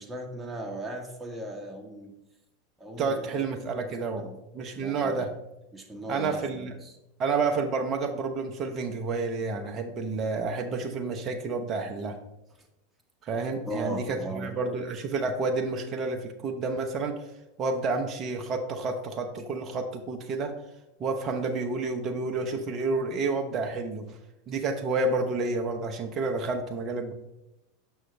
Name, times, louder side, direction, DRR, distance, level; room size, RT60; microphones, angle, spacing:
voice 1, 0.0-2.1 2.8-3.8 4.1-4.4 4.7-5.3 5.7-6.9 13.6-14.5, right 1 dB, 10° right, 0 dB, 1.3 m, -38 dB
voice 2, 3.0-4.3 4.5-5.3 6.1-6.7 7.2-12.2 13.2-17.2 17.6-20.6 21.0-24.1 24.5-27.1, right 3 dB, 40° right, 5 dB, 0.8 m, -30 dB
6.3 x 5.6 x 3.3 m, 0.92 s
hypercardioid pair, 90°, 0 cm